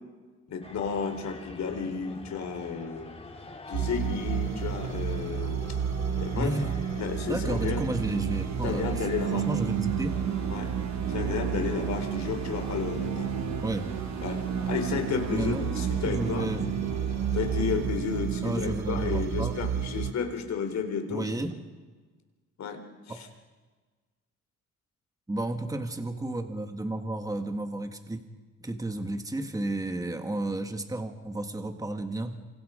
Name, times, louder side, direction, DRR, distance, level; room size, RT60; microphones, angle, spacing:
voice 1, 0.5-3.1 3.7-5.6 6.2-6.5 7.0-7.8 8.6-9.5 10.5-10.7 11.1-13.3 14.2-14.4 14.7-16.5 17.3-21.2 22.6-22.8 23.1-23.3, left 6 dB, 65° left, 5 dB, 4.1 m, -32 dB
sound 1, 0.6-17.7, left 2 dB, 20° left, 3.6 m, -45 dB
sound 2, 3.7-20.1, right 8 dB, 65° right, 1.4 m, -31 dB
voice 2, 6.3-6.7 7.3-10.2 13.6-13.9 15.3-15.6 16.0-16.9 18.4-19.6 21.1-21.6 23.1-23.2 25.3-28.2 28.6-32.3, right 2 dB, 10° right, 6 dB, 1.8 m, -32 dB
27.5 x 25.5 x 5.1 m, 1.4 s
cardioid pair, 90°, 30 cm